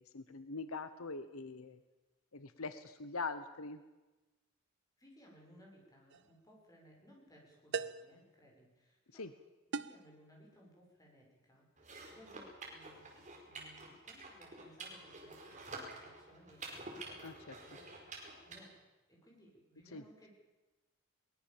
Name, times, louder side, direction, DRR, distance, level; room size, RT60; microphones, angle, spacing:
voice 1, 0.0-1.8 2.3-3.8 9.1-9.3 17.2-17.3 19.9-20.0, left 4 dB, 70° left, 11 dB, 1.1 m, -43 dB
voice 2, 5.0-9.3 9.7-18.8 19.1-20.3, equal, 15° left, -2 dB, 7.1 m, -62 dB
sound 1, 6.1-6.3 7.7-8.2 9.7-10.1, right 5 dB, 55° right, 0.7 m, -39 dB
sound 2, 11.8-18.6, right 2 dB, 35° right, 4.9 m, -49 dB
22.5 x 20.5 x 7.3 m, 1.1 s
head